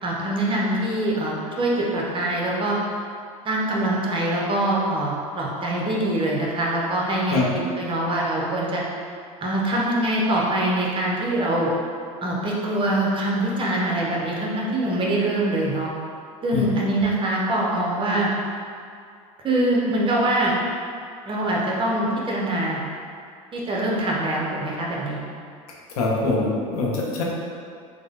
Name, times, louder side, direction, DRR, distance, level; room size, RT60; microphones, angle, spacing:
voice 1, 0.0-2.8 3.4-7.4 7.7-8.8 9.4-11.7 12.2-15.9 16.4-18.3 19.4-20.5 21.3-22.8 23.5-25.2, right 1 dB, 30° right, -3 dB, 0.7 m, -24 dB
voice 2, 26.0-27.2, left 3 dB, 85° left, -3 dB, 0.7 m, -23 dB
3.2 x 2.1 x 3.6 m, 2.3 s
hypercardioid pair, 90°, 19 cm